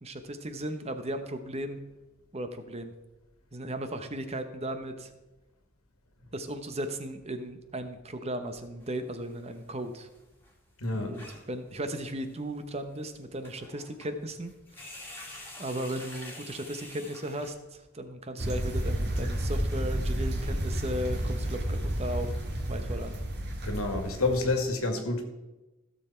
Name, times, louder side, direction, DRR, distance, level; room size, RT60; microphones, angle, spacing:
voice 1, 0.0-1.8 2.3-2.9 3.5-5.1 6.3-10.1 10.9-11.2 11.5-14.5 14.9-15.0 15.6-22.4 22.7-23.1, right 1 dB, 30° right, 8 dB, 0.9 m, -36 dB
sound 1, 8.8-9.5 9.8-9.9 10.2-10.3 10.4-10.5 10.9-11.5 12.2-12.3 13.0-13.1 13.4-14.1 14.4-17.5, left 1 dB, 10° left, 2.2 m, -47 dB
voice 2, 10.8-11.2 23.6-25.2, left 2 dB, 80° left, 5 dB, 2.1 m, -28 dB
sound 2, 18.4-24.5, right 1 dB, 50° right, 2.0 m, -31 dB
15.5 x 6.9 x 4.4 m, 1.0 s
head